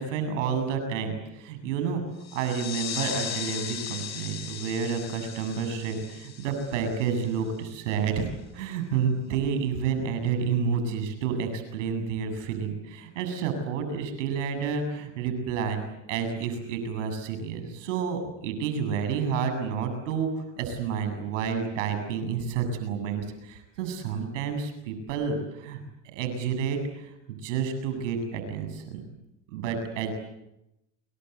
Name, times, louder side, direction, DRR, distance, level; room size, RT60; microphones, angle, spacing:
voice 1, 0.0-2.0 2.3-15.8 16.1-25.8 26.1-29.0 29.5-30.1, right 6 dB, 80° right, 8 dB, 7.7 m, -30 dB
sound 1, 2.2-7.5, left 9 dB, 45° left, 6.8 m, -37 dB
29.5 x 23.0 x 8.2 m, 0.90 s
supercardioid pair, 105°, 37 cm